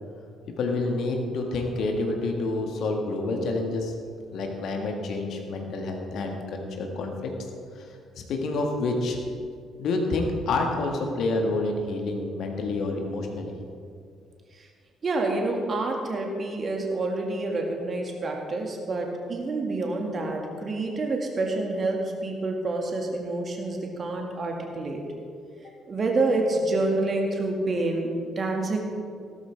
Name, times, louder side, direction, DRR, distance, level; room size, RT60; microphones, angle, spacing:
voice 1, 0.6-3.9 4.3-7.3 7.7-7.8 8.3-9.2 9.8-13.5 25.6-25.7, left 2 dB, 55° left, 2 dB, 1.8 m, -28 dB
voice 2, 15.0-25.0 25.9-28.8, right 2 dB, 40° right, 2 dB, 2.1 m, -28 dB
16.5 x 13.0 x 3.5 m, 2.3 s
figure-of-eight pair, 45°, 0 cm